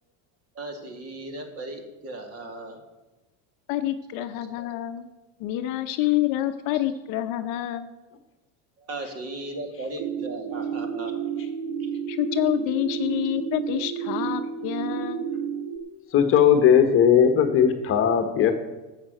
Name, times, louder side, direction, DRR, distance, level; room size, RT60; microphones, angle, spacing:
voice 1, 0.5-2.8 4.2-4.3 8.8-11.2 11.8-11.9, right 2 dB, 35° right, 5 dB, 2.3 m, -37 dB
voice 2, 3.7-5.1 5.4-7.9 12.1-15.3, left 13 dB, 50° left, 8 dB, 0.9 m, -27 dB
sound 1, 10.0-15.8, right 7 dB, 80° right, 1.6 m, -31 dB
voice 3, 16.1-18.5, left 8 dB, 30° left, 7 dB, 1.2 m, -18 dB
13.0 x 7.5 x 7.7 m, 1.1 s
supercardioid pair, 150°, 40 cm